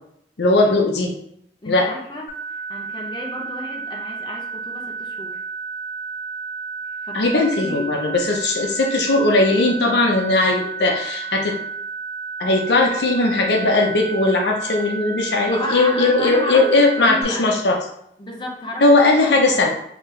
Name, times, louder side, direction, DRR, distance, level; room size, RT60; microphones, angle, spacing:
voice 1, 0.4-1.1 1.7-1.9 7.1-11.5 12.4-17.8 18.8-19.7, left 2 dB, 75° left, 1 dB, 0.7 m, -18 dB
voice 2, 1.6-2.2 2.7-5.4 7.0-7.9 15.5-17.4 18.2-18.9, left 1 dB, 25° left, -1 dB, 0.6 m, -31 dB
sound 1, 2.3-17.2, right 4 dB, 45° left, 1.0 m, -32 dB
3.8 x 2.8 x 3.2 m, 0.72 s
head